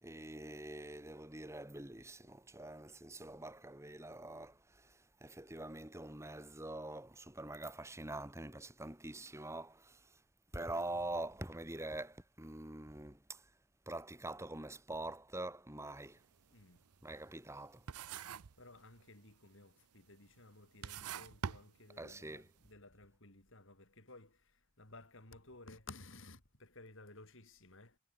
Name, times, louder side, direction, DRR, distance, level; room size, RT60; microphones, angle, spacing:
voice 1, 0.0-10.2 10.5-13.5 13.8-16.2 17.0-17.9 22.0-22.5, right 2 dB, 15° right, 1.6 m, -45 dB
sound 1, 16.0-16.2 16.6-17.6 17.9-18.6 18.9-19.5 20.1-20.2 20.7-22.3, right 7 dB, 90° right, 0.6 m, -44 dB
voice 2, 16.5-16.8 18.6-28.0, left 2 dB, 60° left, 4.6 m, -56 dB
head